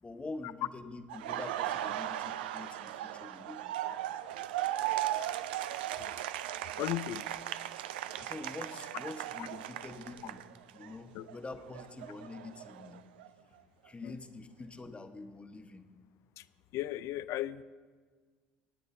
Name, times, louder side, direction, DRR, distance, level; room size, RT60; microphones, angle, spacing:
voice 1, 0.0-3.8 8.2-10.4 10.7-13.0 13.8-16.0, left 3 dB, 20° left, 7 dB, 1.0 m, -46 dB
Laughter, 1.1-10.9 11.3-13.3, right 13 dB, 75° right, 0.4 m, -37 dB
voice 2, 6.8-7.3 9.4-9.5 11.1-11.3 14.0-14.2 16.4-16.5 16.7-17.6, left 14 dB, 60° left, 16 dB, 0.4 m, -36 dB
24.5 x 9.7 x 2.7 m, 1.5 s
figure-of-eight pair, 55°, 6 cm